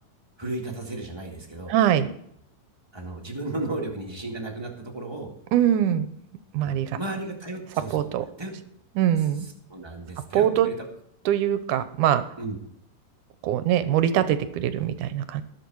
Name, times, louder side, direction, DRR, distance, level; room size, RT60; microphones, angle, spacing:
voice 1, 0.4-1.7 2.9-5.3 6.6-8.0 8.4-8.5 9.7-10.7 12.4-12.6, right 2 dB, 15° right, 0 dB, 0.9 m, -34 dB
voice 2, 1.7-2.1 5.5-6.1 6.5-7.0 7.9-8.3 9.0-9.5 10.3-10.7 11.3-12.2 13.4-15.4, right 11 dB, 75° right, 12 dB, 2.1 m, -22 dB
20.0 x 6.7 x 4.7 m, 0.70 s
omnidirectional pair, 4.0 m